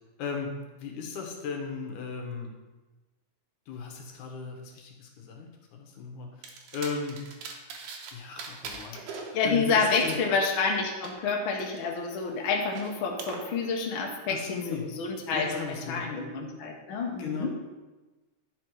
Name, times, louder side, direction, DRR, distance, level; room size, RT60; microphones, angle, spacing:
voice 1, 0.2-2.5 3.7-6.4 6.7-7.3 8.1-10.2 14.3-14.9 15.3-16.1 17.2-17.5, left 5 dB, 75° left, 2 dB, 2.5 m, -36 dB
sound 1, 6.4-8.1 8.4-11.1 11.6-13.4, right 4 dB, 85° right, 2.6 m, -42 dB
voice 2, 9.3-17.5, left 4 dB, 60° left, 0 dB, 1.4 m, -29 dB
10.5 x 4.8 x 4.7 m, 1.2 s
omnidirectional pair, 3.6 m